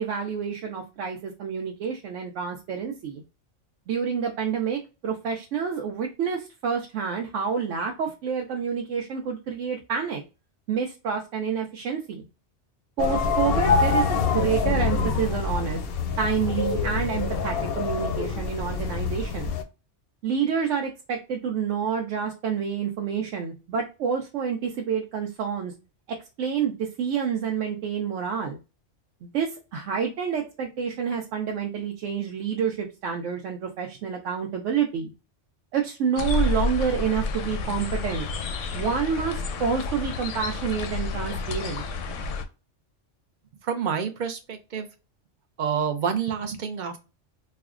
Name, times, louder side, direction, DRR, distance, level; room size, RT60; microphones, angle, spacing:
voice 1, 0.0-3.2 3.9-10.2 10.7-12.2 13.0-15.8 16.2-19.5 20.2-25.7 26.1-28.6 29.2-35.1 35.7-38.3 38.7-41.8, right 7 dB, 80° right, 1 dB, 0.9 m, -28 dB
sound 1, 13.0-19.6, left 5 dB, 65° left, 0.7 m, -25 dB
sound 2, 36.2-42.4, left 3 dB, 90° left, 0.9 m, -30 dB
voice 2, 43.6-44.9 45.6-47.0, right 7 dB, 60° right, 6 dB, 0.5 m, -28 dB
4.4 x 2.1 x 2.4 m, 0.30 s
omnidirectional pair, 1.2 m